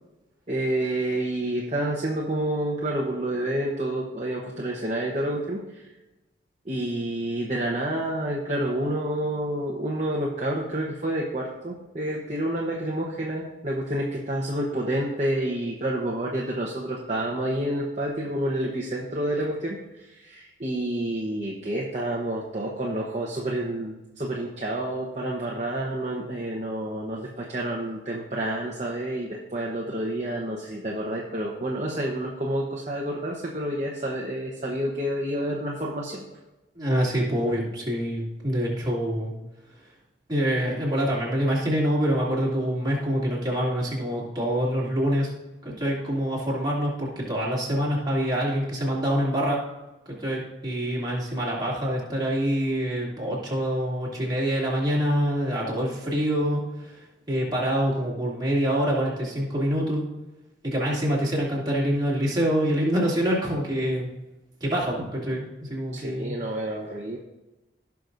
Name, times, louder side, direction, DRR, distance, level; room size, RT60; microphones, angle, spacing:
voice 1, 0.5-5.6 6.7-19.8 20.1-36.2 65.9-67.2, right 1 dB, 40° right, -2 dB, 1.0 m, -29 dB
voice 2, 36.8-39.3 40.3-45.3 45.6-49.6 50.1-57.0 57.3-60.0 60.6-64.1 64.6-66.3, equal, 20° right, -6 dB, 2.7 m, -26 dB
16.5 x 6.0 x 2.7 m, 1.0 s
head